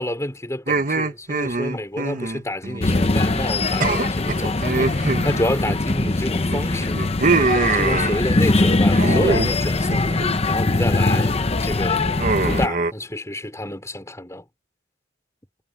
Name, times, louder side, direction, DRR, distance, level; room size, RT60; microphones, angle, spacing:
voice 1, 0.0-7.0 7.3-11.4 11.6-12.1 12.4-14.4, left 1 dB, 15° left, 4.0 m, -29 dB
sound 1, 0.7-3.1 3.3-3.5 3.8-6.1 6.5-8.5 8.9-9.6 9.9-10.4 10.8-11.2 12.2-12.9, right 3 dB, 45° right, 1.2 m, -24 dB
sound 2, 2.8-12.7, left 2 dB, 30° left, 0.8 m, -21 dB
head